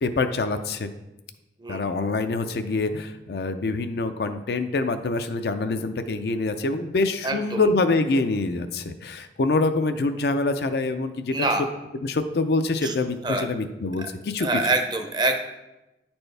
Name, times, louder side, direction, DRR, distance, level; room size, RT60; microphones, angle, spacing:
voice 1, 0.0-0.9 1.7-11.5 12.0-14.6, left 3 dB, 60° left, 9 dB, 0.4 m, -25 dB
voice 2, 7.2-7.6 11.3-11.7 12.8-12.9 13.2-13.4 14.0-14.1 14.4-15.4, right 2 dB, 25° right, 6 dB, 0.6 m, -25 dB
9.5 x 4.4 x 3.3 m, 0.98 s
head